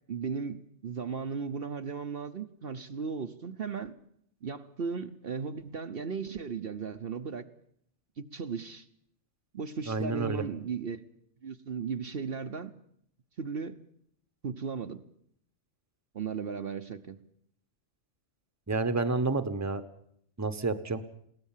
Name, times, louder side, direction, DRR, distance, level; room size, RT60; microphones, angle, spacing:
voice 1, 0.1-3.9 4.4-7.4 8.2-8.9 9.5-11.0 11.4-12.7 13.4-13.8 14.4-15.0 16.1-17.2, right 5 dB, 55° right, 8 dB, 1.1 m, -36 dB
voice 2, 9.9-10.4 18.7-19.8 20.4-21.0, right 3 dB, 15° right, 11 dB, 1.1 m, -29 dB
22.0 x 17.5 x 7.4 m, 0.70 s
omnidirectional pair, 1.2 m